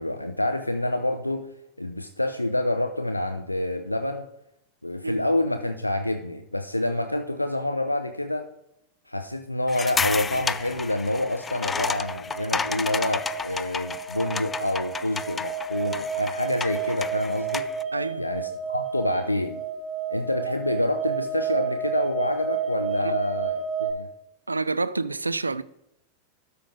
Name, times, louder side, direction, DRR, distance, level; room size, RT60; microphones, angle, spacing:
voice 1, 0.0-1.5 1.8-4.3 4.8-8.5 9.1-17.7 18.2-19.6 20.1-24.1, left 1 dB, 85° left, 0.5 m, -27 dB
sound 1, 9.7-17.8, left 5 dB, 15° left, 0.3 m, -32 dB
sound 2, 10.6-23.9, right 6 dB, ahead, 3.5 m, -32 dB
voice 2, 17.9-18.3 23.0-23.2 24.5-25.6, right 3 dB, 80° right, 0.4 m, -28 dB
12.5 x 5.0 x 5.0 m
figure-of-eight pair, 90°, 0 cm